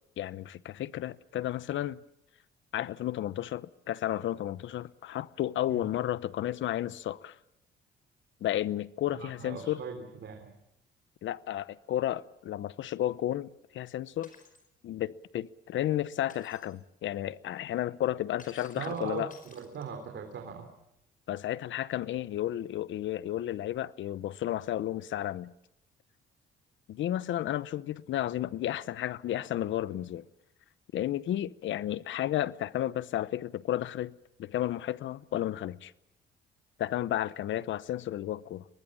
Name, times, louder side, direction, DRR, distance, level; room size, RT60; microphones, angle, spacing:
voice 1, 0.2-2.0 2.7-7.4 8.4-9.8 11.2-14.3 14.8-19.3 21.3-25.5 26.9-30.3 30.9-34.1 34.4-35.9 36.8-38.7, left 12 dB, 75° left, 0.9 m, -32 dB
voice 2, 9.1-10.5 18.7-20.7, right 6 dB, 65° right, 3.7 m, -40 dB
Shatter, 14.2-14.7 16.3-16.8 18.4-20.1, left 5 dB, 45° left, 5.2 m, -54 dB
23.5 x 19.5 x 8.7 m
cardioid pair, 90°, 20 cm